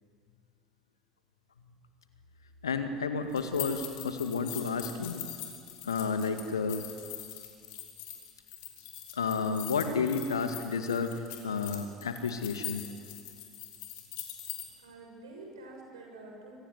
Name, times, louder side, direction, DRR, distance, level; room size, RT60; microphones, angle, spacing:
voice 1, 2.6-5.2 5.8-6.9 9.1-12.8, left 5 dB, 75° left, 8 dB, 2.0 m, -31 dB
sound 1, 3.3-14.6, left 12 dB, 60° left, 4.6 m, -42 dB
voice 2, 14.4-16.6, right 2 dB, 75° right, 1 dB, 7.5 m, -48 dB
26.5 x 23.5 x 9.6 m, 2.4 s
figure-of-eight pair, 65°, 2 cm